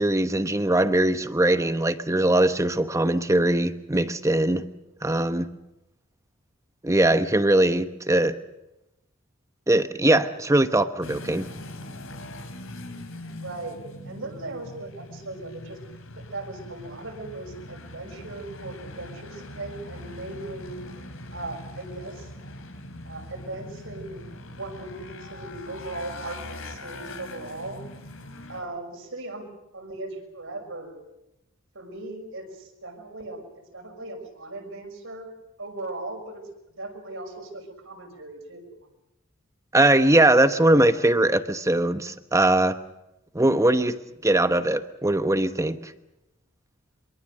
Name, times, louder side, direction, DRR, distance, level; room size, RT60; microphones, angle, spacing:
voice 1, 0.0-4.7 5.0-5.5 6.8-8.4 9.7-11.5 39.7-42.8 43.3-44.0 44.2-45.9, right 1 dB, 15° right, 10 dB, 1.1 m, -21 dB
sound 1, 11.0-28.6, left 1 dB, 85° left, 3.5 m, -41 dB
voice 2, 13.4-15.8 16.2-20.8 21.3-22.3 23.0-27.9 28.5-31.0 31.7-33.4 33.7-35.3 35.6-36.5 36.8-38.7, right 2 dB, 70° right, 2 dB, 6.3 m, -38 dB
25.0 x 23.5 x 6.7 m, 0.90 s
head